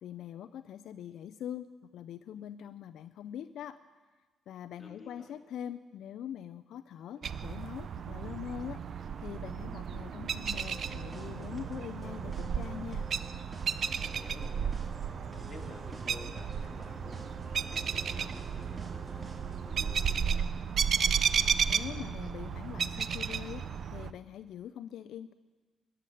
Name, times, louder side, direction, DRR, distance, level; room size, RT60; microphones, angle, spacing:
voice 1, 0.0-3.8 4.5-13.1 21.7-25.3, left 10 dB, 75° left, 12 dB, 0.4 m, -43 dB
voice 2, 4.8-5.3 14.0-14.8 15.3-17.2 17.7-20.6, left 3 dB, 30° left, 1 dB, 2.4 m, -52 dB
sound 1, 6.9-12.7, right 4 dB, 80° right, 3.1 m, -65 dB
sound 2, 7.2-24.1, right 7 dB, 55° right, 0.5 m, -33 dB
sound 3, 10.5-20.1, right 1 dB, 25° right, 1.8 m, -50 dB
14.0 x 7.8 x 10.0 m, 1.3 s
cardioid pair, 90°, 0 cm